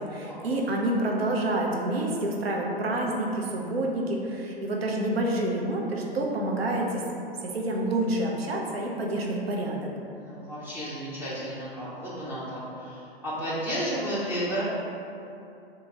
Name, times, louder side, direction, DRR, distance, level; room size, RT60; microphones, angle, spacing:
voice 1, 0.0-7.2 7.5-9.9, right 1 dB, 75° right, -1 dB, 0.7 m, -28 dB
voice 2, 10.1-14.6, equal, 5° right, -10 dB, 0.4 m, -33 dB
2.9 x 2.7 x 3.6 m, 2.7 s
figure-of-eight pair, 105°, 30 cm